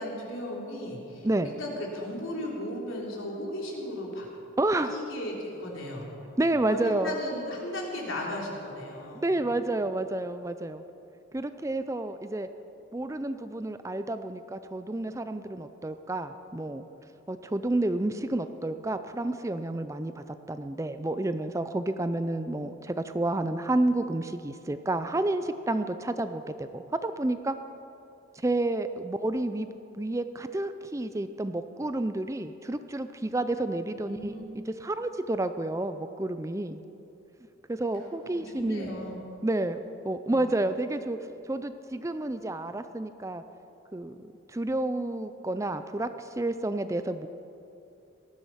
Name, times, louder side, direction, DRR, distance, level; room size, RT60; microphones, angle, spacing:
voice 1, 0.0-4.3 4.9-6.1 6.7-9.5 34.0-34.4 38.2-39.2 40.3-40.5, left 1 dB, 80° left, -2 dB, 3.6 m, -36 dB
voice 2, 4.6-5.0 6.4-7.2 9.1-10.8 11.3-12.5 12.9-16.9 17.3-27.5 28.4-29.7 29.9-36.8 37.7-38.9 39.4-41.2 41.5-43.4 43.9-44.2 44.5-47.3, right 2 dB, 15° right, 10 dB, 0.4 m, -30 dB
19.0 x 13.5 x 5.7 m, 2.8 s
head